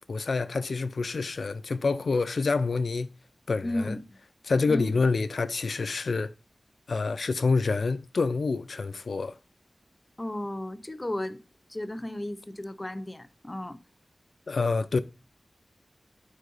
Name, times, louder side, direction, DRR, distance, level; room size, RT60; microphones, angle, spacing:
voice 1, 0.1-3.1 3.5-4.0 4.5-6.3 6.9-9.4 14.5-15.0, left 4 dB, 80° left, 0.4 m, -27 dB
voice 2, 3.6-4.1 4.7-5.0 10.2-11.4 11.7-13.8, left 1 dB, 25° left, 0.6 m, -34 dB
8.4 x 4.6 x 3.9 m
wide cardioid pair, 75°, 0 cm